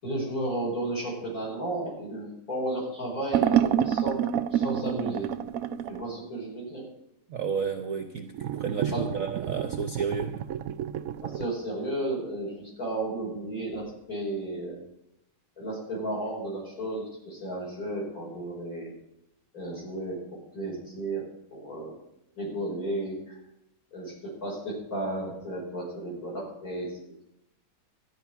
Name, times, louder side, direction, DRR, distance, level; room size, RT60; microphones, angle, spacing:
voice 1, 0.0-4.2 4.5-5.3 5.9-6.9 8.9-9.1 11.2-14.8 15.6-18.9 19.5-22.0 22.4-23.4 23.9-27.0, right 1 dB, 45° left, -4 dB, 6.0 m, -33 dB
sound 1, 3.3-6.0 8.3-11.5, right 10 dB, 80° right, 0.7 m, -28 dB
voice 2, 7.3-10.3, right 6 dB, 50° right, 6 dB, 1.1 m, -32 dB
13.0 x 10.0 x 5.8 m, 0.83 s
omnidirectional pair, 2.2 m